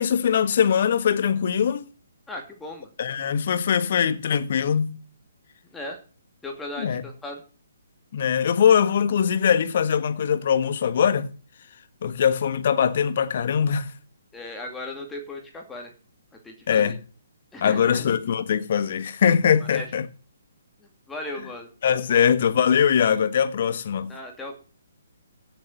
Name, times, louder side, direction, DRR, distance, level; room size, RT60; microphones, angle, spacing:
voice 1, 0.0-1.9 3.0-4.9 6.8-7.0 8.1-11.3 12.0-13.9 16.7-17.0 17.6-20.1 21.8-24.1, left 8 dB, 50° left, 1.3 m, -22 dB
voice 2, 2.3-2.9 5.7-6.0 6.4-7.4 14.3-15.9 16.4-16.9 17.5-18.1 19.7-19.9 21.1-21.7 22.1-22.3 24.1-24.6, left 2 dB, 10° left, 2.5 m, -36 dB
16.0 x 6.9 x 5.5 m
figure-of-eight pair, 135°, 0 cm